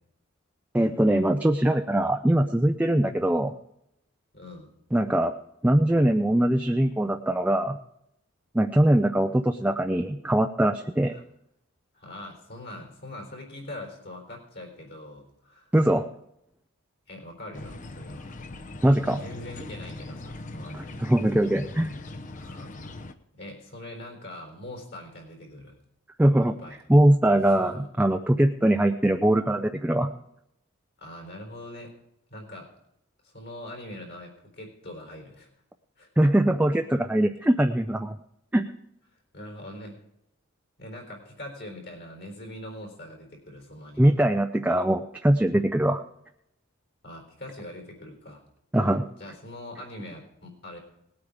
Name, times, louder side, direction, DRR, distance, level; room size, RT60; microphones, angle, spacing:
voice 1, 0.7-3.5 4.9-5.3 5.6-7.8 8.5-11.1 15.7-16.1 18.8-19.2 20.7-21.9 26.2-26.6 26.9-30.1 36.2-38.2 38.5-38.7 44.0-46.0 48.7-49.1, right 1 dB, 5° right, 5 dB, 0.4 m, -22 dB
voice 2, 4.3-4.7 11.1-11.2 11.9-15.7 17.1-18.4 19.0-21.0 22.3-23.0 23.3-25.7 26.6-26.8 27.4-27.9 31.0-31.9 32.3-32.7 33.2-35.5 36.0-36.1 39.3-39.9 40.8-44.1 47.0-48.4 49.2-50.8, left 1 dB, 55° left, 2 dB, 4.0 m, -42 dB
sound 1, 17.5-23.1, left 2 dB, 40° left, 0.7 m, -40 dB
19.0 x 8.6 x 4.9 m, 0.79 s
head